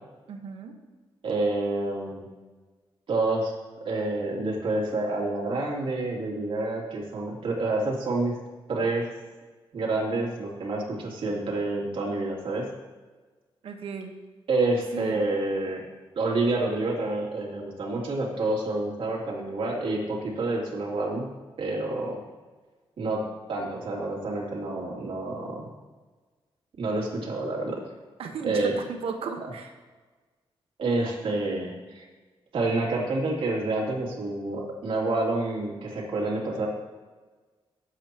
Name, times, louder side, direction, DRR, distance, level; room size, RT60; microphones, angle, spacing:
voice 1, 0.3-0.7 13.6-14.1 14.9-15.2 28.2-29.7, right 5 dB, 80° right, 5 dB, 1.3 m, -35 dB
voice 2, 1.2-2.2 3.1-3.5 3.8-8.4 8.7-9.1 9.7-12.7 14.5-15.8 16.1-21.3 21.6-22.2 23.0-23.2 23.5-25.7 26.8-27.8 28.4-28.7 29.4-29.5 30.8-32.0 32.5-36.7, right 2 dB, 65° right, -2 dB, 2.9 m, -28 dB
17.5 x 8.2 x 3.0 m, 1.3 s
cardioid pair, 110°, 10 cm